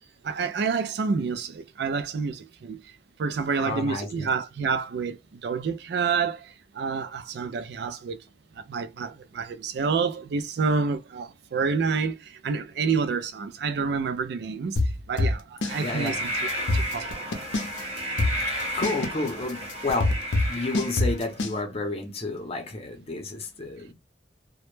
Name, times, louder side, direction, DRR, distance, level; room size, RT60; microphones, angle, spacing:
voice 1, 0.2-2.8 3.2-8.2 8.6-14.8 15.1-16.3 16.6-17.3, right 5 dB, 65° right, 0.3 m, -28 dB
voice 2, 3.6-4.3 15.8-16.2 18.4-18.5 18.7-20.2 20.5-23.9, left 2 dB, 35° left, 0.6 m, -31 dB
sound 1, 14.8-15.8 16.1-16.2 16.5-17.8 18.2-21.6, left 2 dB, 85° left, 0.6 m, -24 dB
sound 2, 15.7-21.4, equal, 35° right, 0.7 m, -33 dB
2.1 x 2.0 x 3.0 m
head